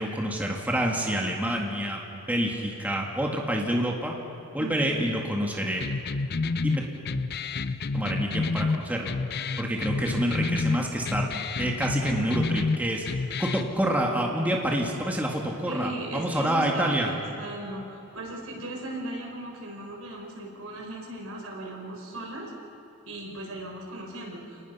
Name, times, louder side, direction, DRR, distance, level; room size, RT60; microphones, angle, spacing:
voice 1, 0.0-4.1 4.5-5.9 6.6-6.8 7.9-9.1 9.6-17.1, right 1 dB, 10° right, -1 dB, 2.0 m, -28 dB
voice 2, 4.6-5.0 9.9-10.4 15.7-22.5 23.0-24.7, right 1 dB, 75° right, 1 dB, 4.9 m, -37 dB
sound 1, 5.8-13.8, left 3 dB, 50° left, 0.6 m, -29 dB
29.5 x 19.5 x 5.6 m, 3.0 s
head